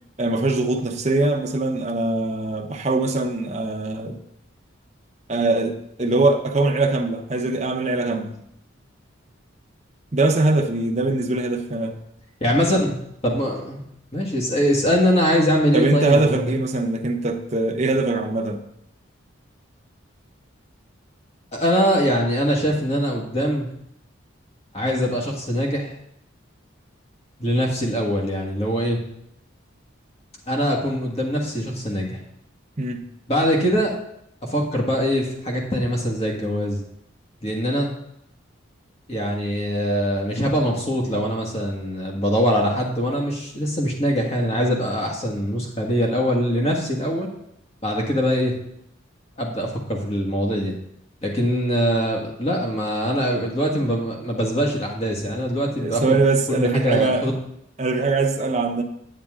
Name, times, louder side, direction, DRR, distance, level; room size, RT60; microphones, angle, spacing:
voice 1, 0.2-4.2 5.3-8.4 10.1-12.0 15.7-18.7 32.8-33.1 55.8-57.3 57.8-58.8, right 2 dB, 35° right, 3 dB, 0.8 m, -22 dB
voice 2, 12.4-12.9 13.2-13.8 14.1-16.6 21.5-23.7 24.7-25.9 27.4-29.0 30.5-32.2 33.3-33.9 34.5-36.8 37.4-37.9 39.1-47.3 47.8-48.5 49.4-50.7 51.2-56.2 56.5-57.3, equal, 30° left, 0 dB, 1.6 m, -22 dB
9.2 x 8.7 x 3.7 m, 0.74 s
head